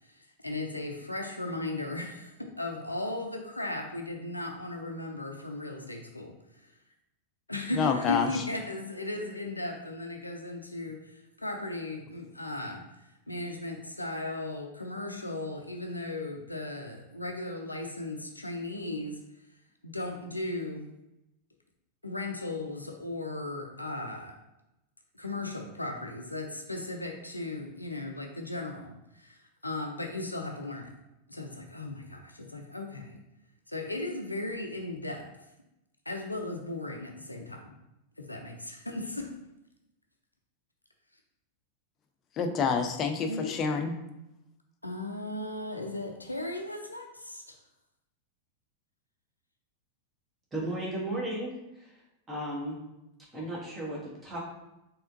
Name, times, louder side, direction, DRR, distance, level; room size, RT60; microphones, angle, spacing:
voice 1, 0.0-6.7 7.5-19.2 19.8-20.9 22.0-24.4 25.1-30.9 31.3-33.2 33.7-35.3 36.1-37.7 38.2-39.4 43.3-43.6 44.8-47.6, left 2 dB, 85° left, 2 dB, 0.4 m, -36 dB
voice 2, 7.7-8.4 42.4-43.9, left 5 dB, 30° left, 5 dB, 0.5 m, -28 dB
voice 3, 50.5-51.9 52.3-52.8 53.3-54.4, right 1 dB, 15° right, -4 dB, 1.5 m, -35 dB
4.2 x 3.6 x 2.6 m, 0.90 s
figure-of-eight pair, 90°, 0 cm